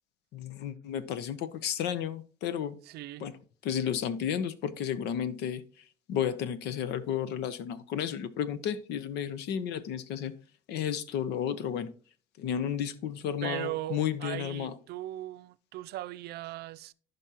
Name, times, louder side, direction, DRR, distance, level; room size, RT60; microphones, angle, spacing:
voice 1, 0.3-2.8 3.2-3.4 3.6-5.6 6.1-10.3 10.7-11.9 12.4-14.7, left 9 dB, 85° left, 0.9 m, -32 dB
voice 2, 2.9-3.3 13.4-16.9, right 15 dB, 70° right, 0.5 m, -38 dB
14.5 x 5.3 x 2.9 m
cardioid pair, 110°, 17 cm